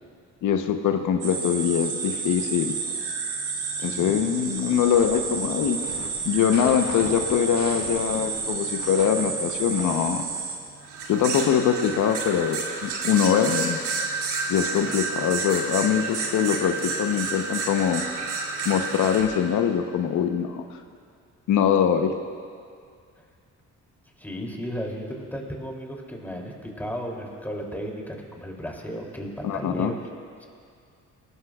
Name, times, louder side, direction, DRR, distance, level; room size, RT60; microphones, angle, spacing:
voice 1, 0.4-2.8 3.8-5.8 6.2-10.3 11.1-13.8 14.5-18.0 18.6-20.6 21.5-22.1 29.4-29.9, left 8 dB, 80° left, 6 dB, 1.0 m, -23 dB
sound 1, 1.2-19.2, right 4 dB, 90° right, 2.7 m, -30 dB
voice 2, 3.8-4.3 24.2-30.0 30.4-30.5, equal, 5° left, -1 dB, 3.1 m, -34 dB
sound 2, 4.4-10.3, left 5 dB, 60° left, 1.8 m, -40 dB
23.5 x 19.0 x 2.4 m, 2.2 s
cardioid pair, 90°, 30 cm